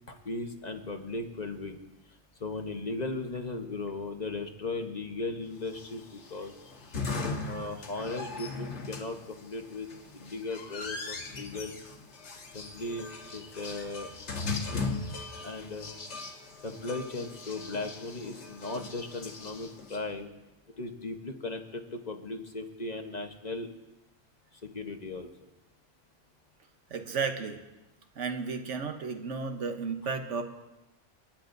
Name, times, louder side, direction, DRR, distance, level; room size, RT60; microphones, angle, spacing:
voice 1, 0.1-1.8 2.4-6.5 7.4-9.9 10.1-11.8 12.5-14.1 15.4-15.9 16.6-20.3 20.8-23.7 24.5-25.3, left 2 dB, 40° left, 4 dB, 1.1 m, -37 dB
sound 1, 5.7-20.0, left 3 dB, 75° left, 1.5 m, -39 dB
voice 2, 26.9-27.6 28.2-30.4, right 5 dB, 85° right, 6 dB, 1.3 m, -33 dB
29.0 x 10.0 x 2.6 m, 1.0 s
omnidirectional pair, 1.2 m